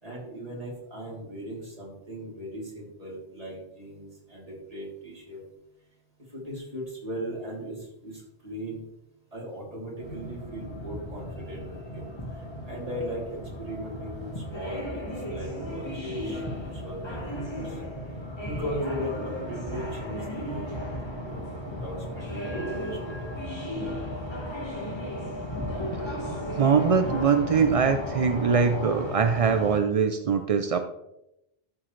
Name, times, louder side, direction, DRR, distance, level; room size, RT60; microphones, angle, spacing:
voice 1, 0.0-5.4 6.3-8.8 9.3-12.0 12.4-17.8 18.5-20.6 21.2-21.5 21.8-23.2, equal, 30° right, -5 dB, 3.5 m, -38 dB
sound 1, 10.0-29.8, equal, 25° left, 1.6 m, -35 dB
voice 2, 26.6-30.8, right 6 dB, 50° right, 8 dB, 0.4 m, -23 dB
12.5 x 7.0 x 3.2 m, 0.85 s
omnidirectional pair, 1.2 m